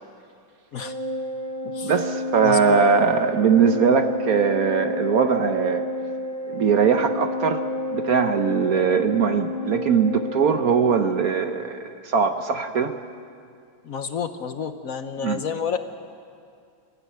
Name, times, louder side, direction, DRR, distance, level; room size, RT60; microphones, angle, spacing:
Organ, 0.8-11.5, left 1 dB, 25° right, 1.0 m, -30 dB
voice 1, 1.8-5.9 6.5-7.6 7.9-12.9 15.2-15.4, right 6 dB, 60° right, 8 dB, 1.0 m, -21 dB
voice 2, 2.4-2.8 13.8-15.8, left 7 dB, 60° left, 9 dB, 0.9 m, -30 dB
23.0 x 14.5 x 9.3 m, 2.4 s
omnidirectional pair, 2.2 m